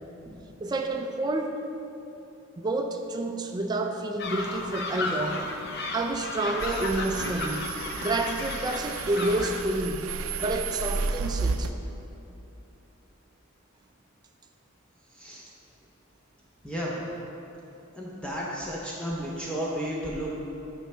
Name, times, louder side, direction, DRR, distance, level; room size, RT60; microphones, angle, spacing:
voice 1, 0.6-1.6 2.6-5.4 5.9-7.7 8.0-10.1 10.4-11.7, right 2 dB, 20° right, 3 dB, 0.3 m, -29 dB
sound 1, 4.2-9.6, left 2 dB, 55° left, 0.6 m, -34 dB
sound 2, 6.6-11.7, right 4 dB, 85° right, 0.4 m, -32 dB
voice 2, 15.1-15.4 16.6-17.1 18.0-20.3, equal, 5° left, -5 dB, 0.7 m, -33 dB
8.8 x 5.4 x 3.3 m, 2.9 s
head